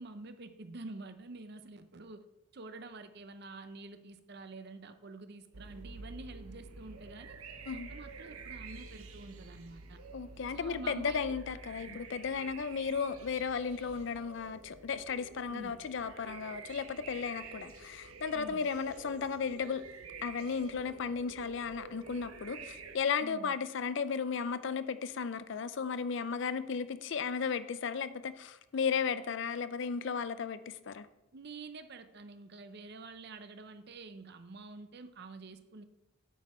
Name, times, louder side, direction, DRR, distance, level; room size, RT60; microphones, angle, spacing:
voice 1, 0.0-2.2 2.5-7.4 7.7-10.0 10.5-11.4 15.5-15.8 18.3-18.7 23.2-23.5 31.3-35.8, right 3 dB, 50° right, 0.6 m, -48 dB
sound 1, 5.5-23.0, right 4 dB, 85° right, 0.9 m, -49 dB
voice 2, 10.1-19.8 20.2-31.1, left 6 dB, 55° left, 0.4 m, -35 dB
8.2 x 6.3 x 4.3 m
head